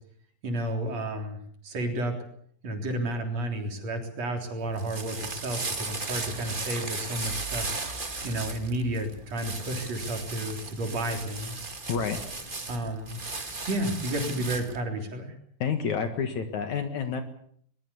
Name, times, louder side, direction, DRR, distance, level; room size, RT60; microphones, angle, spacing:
voice 1, 0.4-1.4 1.6-2.2 2.6-7.7 8.2-11.7 12.7-13.2 13.7-15.3, right 1 dB, 50° right, 4 dB, 4.7 m, -31 dB
sound 1, 4.6-14.8, right 3 dB, 25° right, 1.2 m, -36 dB
voice 2, 11.9-12.2 15.6-17.2, left 6 dB, 60° left, 7 dB, 2.8 m, -29 dB
22.5 x 21.0 x 7.1 m, 0.64 s
omnidirectional pair, 4.0 m